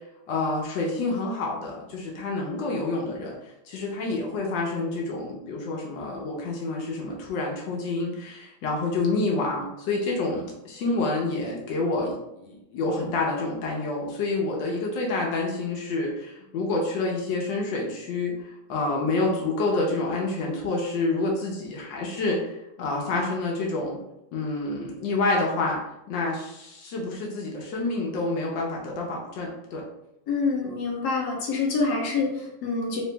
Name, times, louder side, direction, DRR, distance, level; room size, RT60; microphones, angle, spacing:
voice 1, 0.3-3.3 3.7-18.4 18.7-22.5 22.8-24.0 24.3-25.8 26.1-29.8, left 3 dB, 90° left, -2 dB, 1.5 m, -28 dB
voice 2, 30.3-33.0, left 4 dB, 65° left, -2 dB, 1.5 m, -26 dB
3.7 x 3.0 x 3.3 m, 0.87 s
omnidirectional pair, 2.0 m